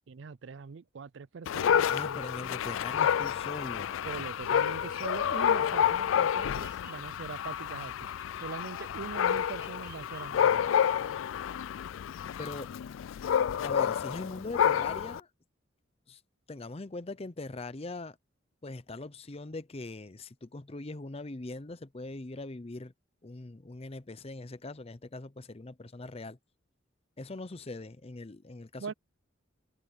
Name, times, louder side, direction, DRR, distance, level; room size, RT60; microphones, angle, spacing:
voice 1, 0.1-2.2 4.1-7.9 8.4-10.6 28.8-28.9, right 5 dB, 65° right, 0.4 m, -42 dB
Dog, 1.5-15.2, left 9 dB, 80° left, 0.3 m, -29 dB
voice 2, 1.9-4.0 12.4-12.7 13.6-15.3 16.1-16.2 16.5-18.2 18.6-22.9 23.2-26.4 27.2-28.9, left 2 dB, 30° left, 0.7 m, -41 dB
Bird vocalization bird call bird song, 4.2-10.6, right 7 dB, 45° right, 1.7 m, -59 dB
head